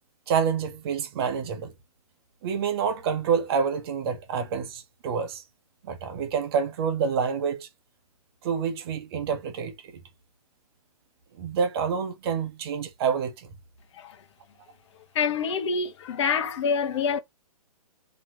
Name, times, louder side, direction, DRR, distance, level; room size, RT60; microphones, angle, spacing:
voice 1, 0.3-1.7 2.4-5.4 5.8-7.7 8.4-9.9 11.4-13.5, right 6 dB, 40° right, 1.0 m, -27 dB
voice 2, 15.1-17.2, left 6 dB, 50° left, 1.0 m, -26 dB
3.1 x 3.0 x 3.9 m
hypercardioid pair, 135°, 19 cm